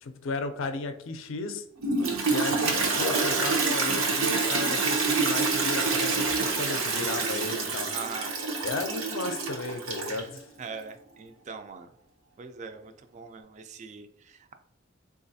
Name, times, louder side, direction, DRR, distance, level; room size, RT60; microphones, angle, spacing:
voice 1, 0.0-1.6 2.3-7.9 8.6-10.5, left 3 dB, 65° left, 9 dB, 0.4 m, -34 dB
Toilet flush, 1.8-10.4, right 4 dB, 80° right, 0.7 m, -27 dB
voice 2, 7.9-8.3 10.1-11.9 12.4-14.5, right 5 dB, 35° right, 7 dB, 0.3 m, -42 dB
3.8 x 2.4 x 2.6 m, 0.73 s
head